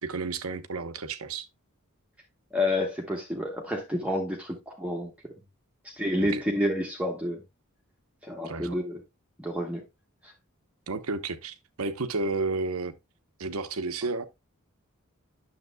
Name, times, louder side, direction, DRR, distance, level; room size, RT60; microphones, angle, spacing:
voice 1, 0.0-1.5 6.2-6.4 8.4-8.8 10.9-12.9 13.4-14.3, right 3 dB, 85° right, 0.8 m, -32 dB
voice 2, 2.5-5.1 5.8-7.4 8.2-9.0 9.4-9.8 10.2-10.3, left 1 dB, 5° right, 1.0 m, -29 dB
9.4 x 6.9 x 2.2 m
head